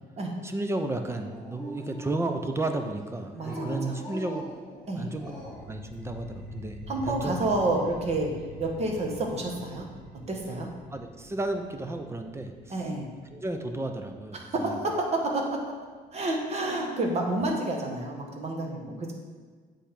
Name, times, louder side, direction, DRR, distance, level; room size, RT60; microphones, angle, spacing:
voice 1, 0.4-4.4 5.0-5.3 5.7-7.3 10.9-12.9 13.3-14.7, right 2 dB, 15° right, 6 dB, 0.6 m, -33 dB
Dog, 1.1-2.6 3.4-5.7, right 1 dB, ahead, 1.7 m, -41 dB
voice 2, 3.3-4.0 4.9-5.1 6.9-8.3 8.6-9.9 10.3-10.7 12.7-13.1 14.3-15.6 16.1-19.1, right 2 dB, 40° right, 1 dB, 1.4 m, -29 dB
sound 1, 5.2-16.1, left 1 dB, 70° right, 1.2 m, -46 dB
8.2 x 3.5 x 5.8 m, 1.6 s
cardioid pair, 115°, 17 cm